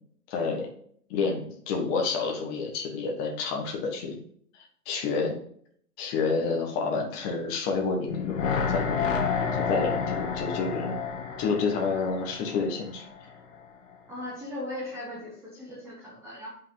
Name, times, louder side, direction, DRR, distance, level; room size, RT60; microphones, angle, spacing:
voice 1, 0.3-0.7 1.1-4.2 4.8-5.3 6.0-9.1 9.5-10.9 11.4-13.0, left 4 dB, 20° left, 1 dB, 1.4 m, -29 dB
sound 1, 8.1-13.2 13.5-13.6, left 6 dB, 55° left, 1.6 m, -30 dB
voice 2, 14.1-16.5, left 1 dB, 5° right, -6 dB, 1.4 m, -38 dB
8.6 x 5.6 x 3.8 m, 0.62 s
hypercardioid pair, 150°, 47 cm